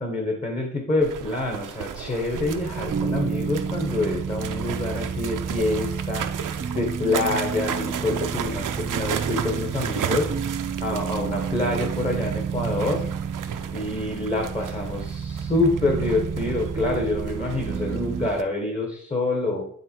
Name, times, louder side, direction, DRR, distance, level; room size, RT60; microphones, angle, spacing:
voice 1, 0.0-10.3 10.8-13.1 13.7-19.6, left 2 dB, 20° left, 1 dB, 1.1 m, -27 dB
sound 1, 1.0-18.4, right 8 dB, 75° right, 0.6 m, -35 dB
sound 2, 2.3-18.3, right 6 dB, 30° right, 0.4 m, -30 dB
9.3 x 3.6 x 4.4 m, 0.62 s
wide cardioid pair, 175°, 32 cm